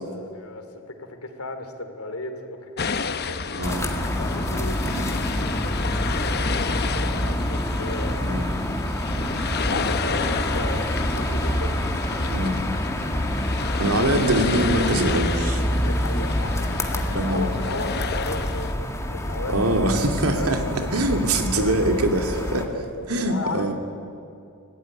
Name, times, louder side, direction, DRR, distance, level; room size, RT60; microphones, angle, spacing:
voice 1, 0.0-3.8 4.2-5.7 6.5-8.4 9.6-11.8 15.5-18.9 19.1-19.6 20.1-20.6 21.5-22.0 22.4-23.7, left 2 dB, 85° left, 6 dB, 3.2 m, -35 dB
sound 1, 2.8-18.7, left 5 dB, 45° left, 0.9 m, -31 dB
sound 2, 3.6-22.7, equal, 15° left, 2.0 m, -27 dB
voice 2, 3.6-3.9 4.9-5.1 8.2-8.6 9.2-9.4 12.3-12.6 13.8-15.6 17.1-17.5 19.5-20.6 20.9-22.7 23.1-23.7, right 1 dB, 85° right, 4 dB, 2.6 m, -23 dB
26.0 x 17.0 x 9.9 m, 2.5 s
head